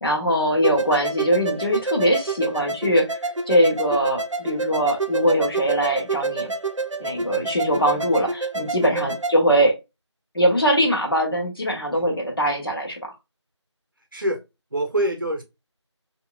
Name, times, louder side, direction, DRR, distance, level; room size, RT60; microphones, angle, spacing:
voice 1, 0.0-3.2 3.5-6.5 7.0-9.8 10.3-13.1, equal, 50° left, 1.3 m, -21 dB
sound 1, 0.6-9.4, right 3 dB, 90° right, 0.6 m, -28 dB
voice 2, 14.7-15.4, right 1 dB, 45° right, 0.8 m, -26 dB
3.7 x 2.8 x 2.2 m
figure-of-eight pair, 175°, 16 cm